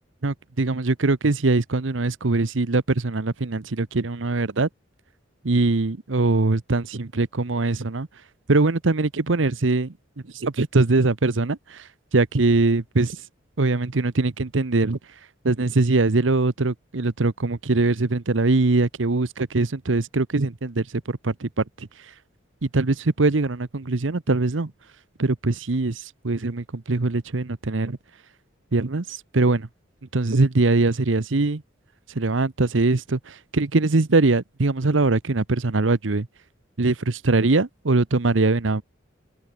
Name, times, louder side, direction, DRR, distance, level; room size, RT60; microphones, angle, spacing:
voice 1, 0.2-4.7 5.4-8.1 8.5-9.9 10.3-13.2 13.6-15.0 15.4-21.9 22.6-24.7 25.2-28.0 28.7-29.7 30.1-31.6 32.1-36.3 36.8-38.8, right 3 dB, 90° right, 1.0 m, -22 dB
open air
head